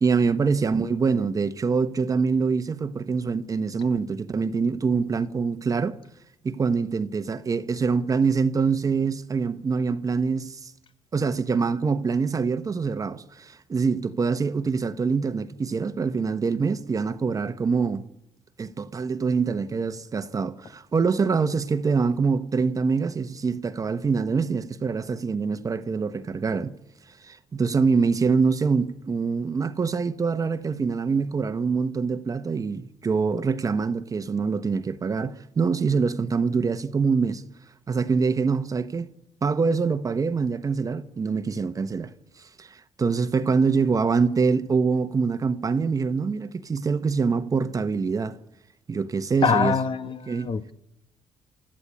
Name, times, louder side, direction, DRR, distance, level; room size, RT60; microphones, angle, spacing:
voice 1, 0.0-6.0 6.4-10.7 11.1-18.1 18.6-26.7 27.2-37.4 37.9-39.1 39.4-42.1 42.6-48.4 48.9-49.8 50.3-50.5, right 5 dB, 30° right, 1.1 m, -25 dB
voice 2, 49.4-50.7, left 6 dB, 50° left, 1.2 m, -24 dB
29.5 x 14.0 x 8.7 m
cardioid pair, 100°, 11 cm